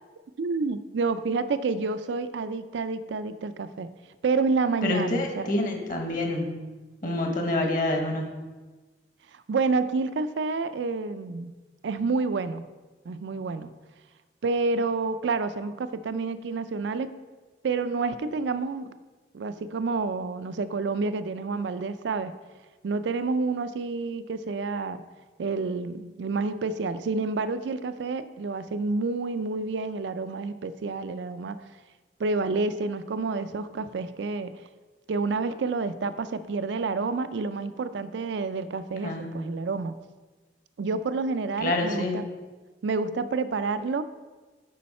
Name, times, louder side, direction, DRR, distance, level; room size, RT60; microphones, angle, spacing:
voice 1, 0.4-3.9 4.2-5.5 9.5-11.5 11.8-12.7 13.1-13.7 14.4-17.1 17.6-18.9 19.3-22.3 22.8-25.0 25.4-31.6 32.2-34.5 35.1-39.9 40.8-42.3 42.8-44.0, right 4 dB, 75° right, 12 dB, 0.4 m, -29 dB
voice 2, 4.8-6.6 7.0-8.3 39.0-39.4 41.6-42.2, left 2 dB, 45° left, 3 dB, 1.2 m, -27 dB
8.5 x 5.5 x 4.2 m, 1.3 s
head